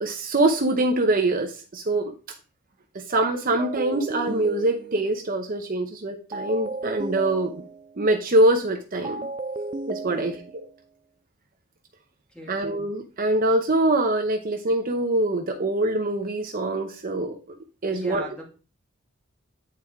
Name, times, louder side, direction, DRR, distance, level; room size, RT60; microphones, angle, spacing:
voice 1, 0.0-2.1 2.9-7.6 8.0-9.3 9.9-10.3 12.5-17.6 17.8-18.2, right 1 dB, 45° right, 4 dB, 0.8 m, -24 dB
sound 1, 3.6-5.3 6.3-8.0 9.0-10.7, right 2 dB, 25° right, 0.3 m, -34 dB
voice 2, 10.0-10.4 12.3-12.6 17.9-18.4, right 2 dB, 5° left, -1 dB, 2.2 m, -38 dB
8.5 x 4.5 x 3.5 m, 0.35 s
head